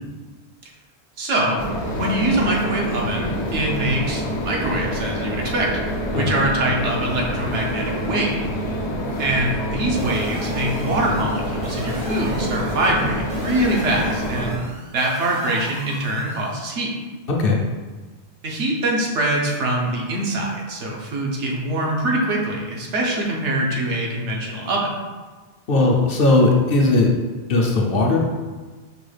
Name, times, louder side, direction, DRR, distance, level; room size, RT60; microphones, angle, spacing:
voice 1, 1.2-1.6 1.9-5.7 6.1-8.3 9.2-14.6 14.9-16.9 18.4-24.9, right 1 dB, 85° right, -2 dB, 1.1 m, -23 dB
sound 1, 1.6-14.6, equal, 80° left, 1.0 m, -27 dB
sound 2, 10.0-16.6, right 2 dB, 40° right, 0.5 m, -38 dB
voice 2, 25.7-27.1 27.5-28.2, left 2 dB, 60° left, -1 dB, 0.7 m, -17 dB
5.3 x 2.3 x 3.2 m, 1.3 s
omnidirectional pair, 1.2 m